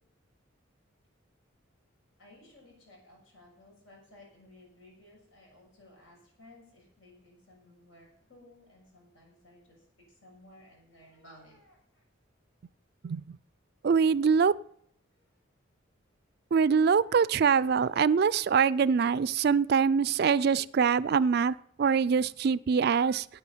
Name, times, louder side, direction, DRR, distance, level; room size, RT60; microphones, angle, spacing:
voice 1, 2.2-12.0 15.2-15.4, left 1 dB, 80° left, 6.3 m, -57 dB
voice 2, 13.0-13.4 13.8-14.6 16.5-23.3, right 6 dB, 50° right, 0.3 m, -24 dB
9.6 x 9.1 x 7.3 m
head